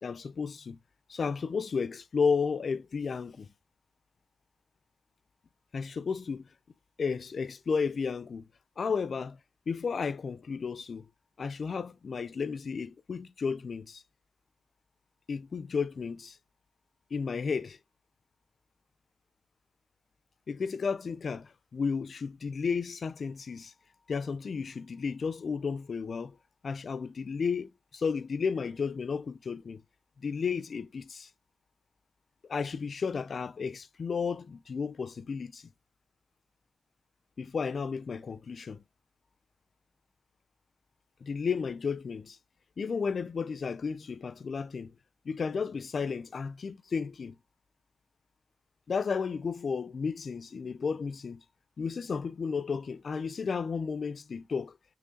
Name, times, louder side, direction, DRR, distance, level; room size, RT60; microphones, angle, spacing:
voice 1, 0.0-0.8 1.1-3.5 5.7-6.5 7.0-8.4 8.8-9.4 9.7-11.1 11.4-14.0 15.3-16.4 17.1-17.8 20.5-23.7 24.1-26.4 26.6-29.8 30.2-31.3 32.5-35.7 37.4-38.8 41.2-42.4 42.8-44.9 45.3-47.4 48.9-51.4 51.8-54.8, left 5 dB, 65° left, 0.4 m, -33 dB
6.3 x 5.8 x 2.7 m
cardioid pair, 45°, 0 cm